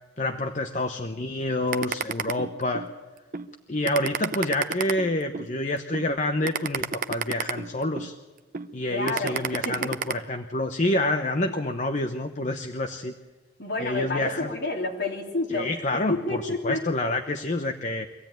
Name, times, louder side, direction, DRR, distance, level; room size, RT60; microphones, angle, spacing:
voice 1, 0.2-2.9 3.7-8.2 8.7-13.1 13.8-14.5 15.5-18.1, left 1 dB, 40° left, 6 dB, 0.9 m, -28 dB
sound 1, 1.7-2.9 3.3-3.5 3.9-5.5 5.9-6.1 6.4-8.1 8.5-8.7 9.1-10.1, right 6 dB, 45° right, 0.7 m, -29 dB
voice 2, 8.9-9.4 9.6-9.9 13.6-16.8, left 2 dB, 60° left, -1 dB, 3.8 m, -29 dB
24.5 x 16.0 x 9.1 m, 1.3 s
head